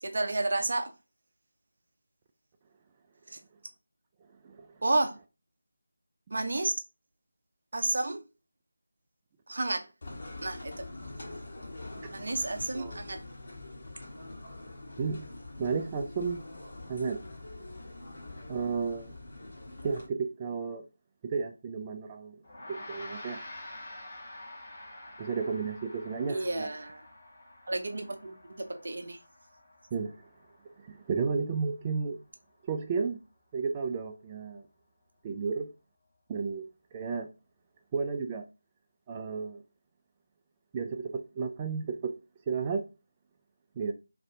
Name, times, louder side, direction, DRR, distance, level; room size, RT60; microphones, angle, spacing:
voice 1, 0.0-0.9 3.3-3.4 4.8-5.1 6.3-6.7 7.7-8.2 9.5-9.8 10.4-10.8 12.1-13.2 26.3-27.0 27.7-28.4 28.7-29.2, right 2 dB, 50° right, 0.7 m, -31 dB
voice 2, 4.4-4.8 12.0-12.2 12.7-13.0 15.0-15.3 15.6-16.4 16.9-17.2 18.5-19.1 19.8-20.9 21.2-22.4 22.7-23.4 25.2-26.7 29.9-30.2 30.8-32.2 32.7-33.2 33.5-34.6 35.2-35.7 36.3-36.7 36.9-37.3 37.9-38.5 39.1-39.6 40.7-42.1 42.5-42.8 43.8-43.9, right 5 dB, 20° right, 0.3 m, -33 dB
sound 1, 10.0-20.1, left 2 dB, 45° left, 1.3 m, -44 dB
Gong, 22.4-32.1, left 1 dB, 25° left, 1.4 m, -48 dB
3.1 x 2.6 x 3.8 m
figure-of-eight pair, 160°, 0 cm